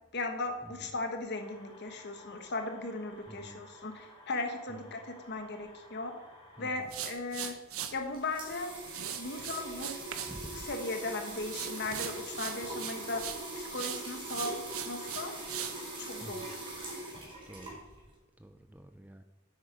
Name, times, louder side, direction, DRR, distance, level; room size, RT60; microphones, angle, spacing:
voice 1, 0.1-6.1 6.6-7.6 7.9-8.7 9.1-9.9 10.5-15.3 16.0-16.6, left 2 dB, 50° left, 5 dB, 1.4 m, -37 dB
sound 1, 1.3-6.7, left 2 dB, 25° left, 3.8 m, -55 dB
voice 2, 3.3-3.6 4.7-5.0 6.6-6.9 10.3-10.7 16.2-16.5 17.5-17.8 18.4-19.2, right 1 dB, 5° right, 7 dB, 0.4 m, -48 dB
sound 2, 6.9-7.9 8.9-10.3 10.6-11.1 11.5-13.4 13.7-15.8, right 9 dB, 70° right, 1.0 m, -39 dB
sound 3, 8.0-18.1, right 2 dB, 25° right, 3.6 m, -42 dB
9.7 x 8.1 x 5.2 m, 1.2 s
head